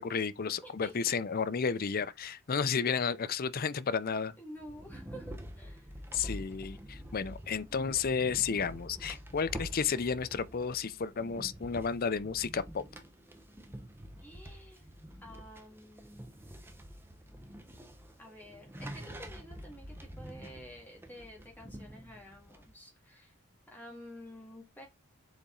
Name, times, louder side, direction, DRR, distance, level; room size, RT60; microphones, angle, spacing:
voice 1, 0.0-4.3 6.1-12.8, left 6 dB, 40° left, 0.5 m, -32 dB
voice 2, 0.6-1.2 4.4-6.0 7.7-8.0 14.2-14.9 15.2-16.5 18.2-23.4 23.7-24.9, equal, 10° left, 1.9 m, -50 dB
sound 1, 4.6-22.7, equal, 10° right, 0.8 m, -47 dB
7.0 x 4.1 x 3.8 m
head